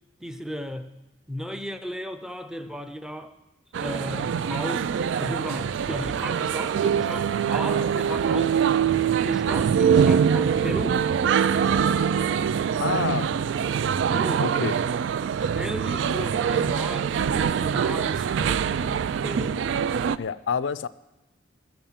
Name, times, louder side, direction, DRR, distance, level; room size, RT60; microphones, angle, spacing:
voice 1, 0.2-0.9 1.3-3.3 3.8-8.6 9.2-11.1 14.0-14.5 15.4-19.7, equal, 5° right, 0.5 m, -35 dB
sound 1, 3.7-20.2, right 7 dB, 75° right, 0.3 m, -24 dB
voice 2, 12.8-13.3 14.4-14.8 20.2-20.9, left 6 dB, 80° left, 0.4 m, -28 dB
13.5 x 6.9 x 7.4 m
head